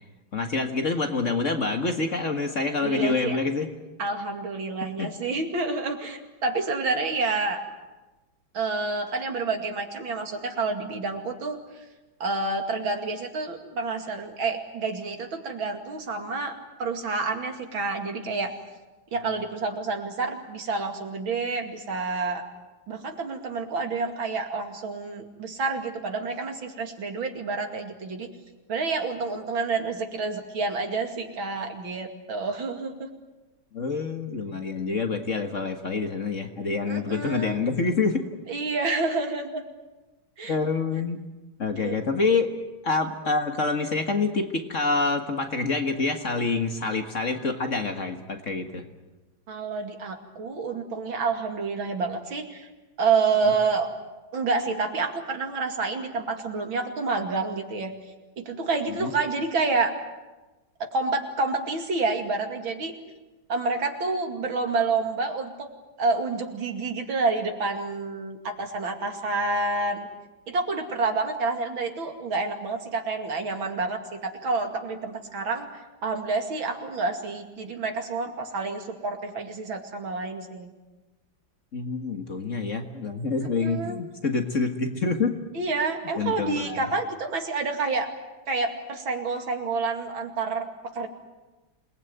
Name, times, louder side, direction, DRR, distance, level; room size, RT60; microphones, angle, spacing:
voice 1, 0.3-3.7 5.0-5.1 33.7-38.2 40.5-41.2 41.6-42.5 42.8-48.8 53.4-53.5 59.0-59.1 81.7-85.4 86.2-86.8, left 4 dB, 40° left, 5 dB, 1.9 m, -27 dB
voice 2, 2.8-3.4 4.0-7.6 8.5-11.6 12.2-16.5 16.8-18.5 19.1-22.4 22.9-28.3 28.7-33.1 36.9-37.6 38.5-39.6 40.4-40.6 41.8-42.0 49.5-52.7 53.0-53.9 54.3-57.9 58.4-59.9 60.9-62.9 63.5-65.7 66.0-70.1 70.5-75.7 76.0-80.7 83.6-84.0 85.5-88.1 88.5-90.7 90.9-91.1, right 3 dB, 85° right, 4 dB, 3.3 m, -28 dB
27.5 x 19.5 x 9.4 m, 1.1 s
omnidirectional pair, 2.1 m